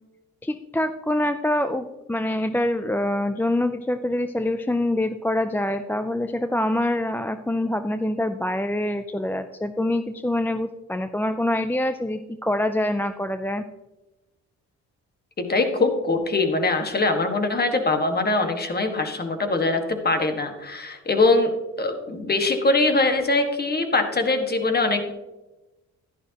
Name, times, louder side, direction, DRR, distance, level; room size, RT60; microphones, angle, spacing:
voice 1, 0.4-13.6, left 1 dB, 5° left, 9 dB, 0.4 m, -25 dB
voice 2, 15.4-21.5 21.8-25.1, left 2 dB, 30° left, 6 dB, 1.7 m, -22 dB
11.5 x 11.0 x 2.9 m, 1.1 s
cardioid pair, 90°, 30 cm